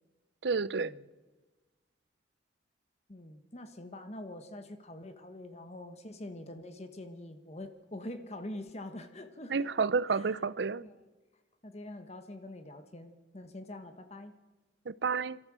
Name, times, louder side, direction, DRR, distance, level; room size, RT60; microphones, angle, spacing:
voice 1, 0.4-0.9 9.5-10.8 14.9-15.4, right 5 dB, 75° right, 0.6 m, -30 dB
voice 2, 3.1-10.3 10.8-11.0 11.6-14.3, left 1 dB, 35° left, 1.2 m, -45 dB
27.5 x 13.0 x 7.6 m
head